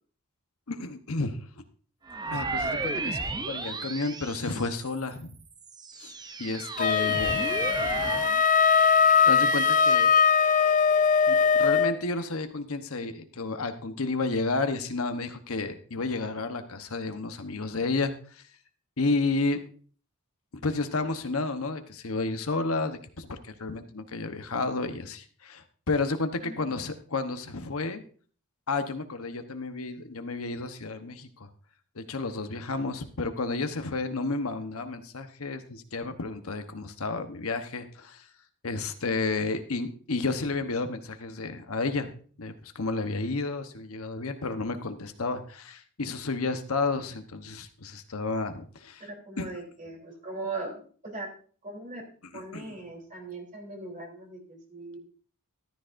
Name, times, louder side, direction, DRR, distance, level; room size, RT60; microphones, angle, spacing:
voice 1, 0.7-1.5 2.3-5.4 6.0-6.1 6.4-7.5 9.2-10.1 11.3-18.4 19.0-19.6 20.6-28.0 28.7-31.5 31.9-38.3 38.6-42.1 42.4-49.0 49.4-49.5 52.5-52.8, left 3 dB, 75° left, 8 dB, 1.1 m, -31 dB
sound 1, 2.1-5.0 5.6-8.4, right 3 dB, 20° right, 0.6 m, -33 dB
Wind instrument woodwind instrument, 6.8-12.0, left 6 dB, 35° left, 0.6 m, -21 dB
voice 2, 26.4-26.8 49.0-51.3 51.6-52.0 52.3-55.0, right 2 dB, 40° right, 1 dB, 3.4 m, -39 dB
14.0 x 12.5 x 2.6 m, 0.43 s
head